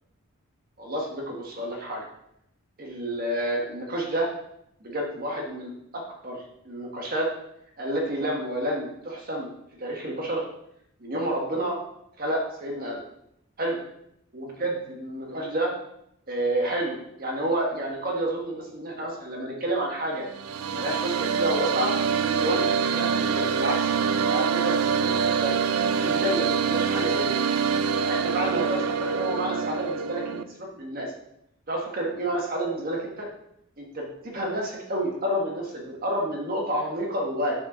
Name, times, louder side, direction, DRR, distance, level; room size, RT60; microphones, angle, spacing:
voice 1, 0.8-2.0 2.8-4.3 4.8-7.3 7.8-9.5 9.8-10.4 11.0-11.8 12.2-13.0 13.6-13.8 14.3-15.7 16.3-20.2 20.7-21.9 22.3-23.9 24.3-25.5 26.0-27.4 28.0-31.1 31.7-33.3 33.8-37.5, right 1 dB, 40° right, -1 dB, 1.3 m, -29 dB
sound 1, 20.2-30.4, right 6 dB, 85° right, 0.5 m, -25 dB
7.0 x 6.7 x 3.9 m, 0.77 s
head